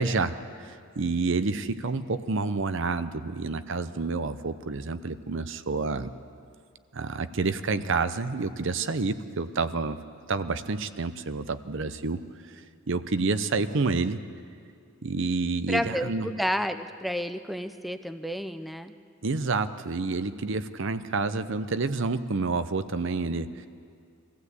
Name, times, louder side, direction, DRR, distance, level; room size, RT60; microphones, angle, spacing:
voice 1, 0.0-6.1 6.9-10.0 10.3-14.2 15.0-16.3 19.2-23.7, right 3 dB, 65° right, 12 dB, 0.7 m, -29 dB
voice 2, 15.7-18.9, equal, ahead, 9 dB, 0.5 m, -30 dB
22.0 x 15.0 x 8.1 m, 2.3 s
head